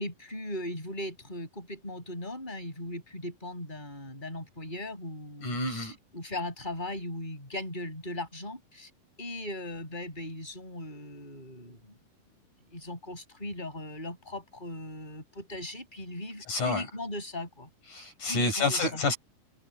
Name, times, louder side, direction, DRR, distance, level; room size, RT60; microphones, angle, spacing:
voice 1, 0.0-8.9 9.2-11.9 12.7-17.7 18.3-19.0, left 1 dB, 10° left, 7.8 m, -38 dB
voice 2, 5.4-6.0 16.5-16.9 17.9-19.2, left 3 dB, 55° left, 6.7 m, -28 dB
omnidirectional pair, 4.3 m